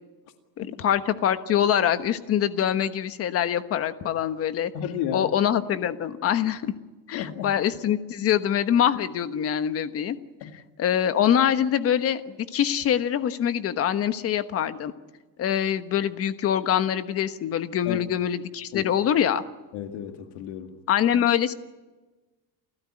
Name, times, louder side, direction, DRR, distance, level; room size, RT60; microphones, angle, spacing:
voice 1, 0.6-4.7 5.1-6.7 7.1-10.2 10.8-14.9 15.4-19.4 20.9-21.5, left 9 dB, 35° left, 11 dB, 1.2 m, -24 dB
voice 2, 4.7-5.3 7.1-7.5 10.4-10.5 17.9-18.0 18.7-18.9 19.7-20.8, left 9 dB, 85° left, 6 dB, 2.1 m, -32 dB
29.0 x 14.5 x 9.9 m, 1.2 s
cardioid pair, 165°, 38 cm